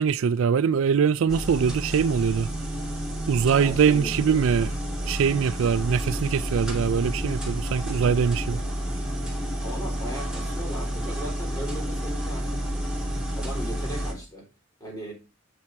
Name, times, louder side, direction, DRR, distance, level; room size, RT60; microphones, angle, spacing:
voice 1, 0.0-2.5 3.3-4.7 5.1-8.6, right 6 dB, 65° right, 0.4 m, -23 dB
sound 1, 1.3-14.1, right 1 dB, 5° right, 2.6 m, -30 dB
voice 2, 3.5-4.4 9.6-12.8 13.3-14.5 14.8-15.1, equal, 20° left, 3.8 m, -38 dB
7.9 x 5.9 x 4.6 m
head